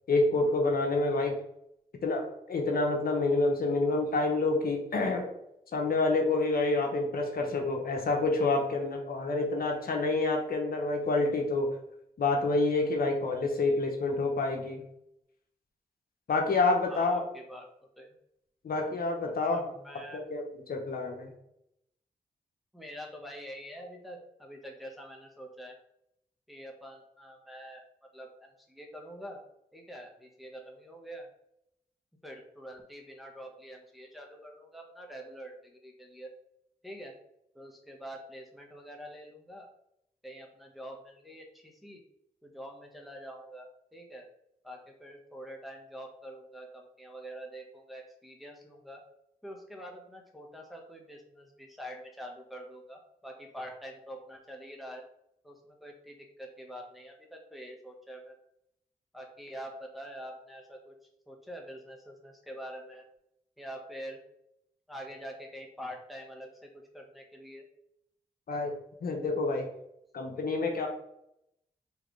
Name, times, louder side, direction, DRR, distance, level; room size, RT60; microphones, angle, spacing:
voice 1, 0.1-1.3 2.0-5.3 5.7-11.8 12.2-14.8 16.3-17.2 18.6-19.6 20.1-21.3 68.5-68.7 69.0-69.7 70.1-70.9, left 3 dB, 70° left, 2 dB, 0.9 m, -28 dB
voice 2, 16.8-17.7 18.0-18.1 19.2-20.2 22.7-25.8 26.5-27.8 28.1-29.4 29.7-31.3 32.2-36.3 36.8-37.1 37.5-39.7 40.2-42.0 42.4-44.3 44.6-49.0 49.4-55.0 55.4-58.4 59.1-60.9 61.3-63.1 63.6-64.2 64.9-67.6, equal, ahead, 0 dB, 1.2 m, -45 dB
4.8 x 3.3 x 3.2 m, 0.78 s
cardioid pair, 60°, 16 cm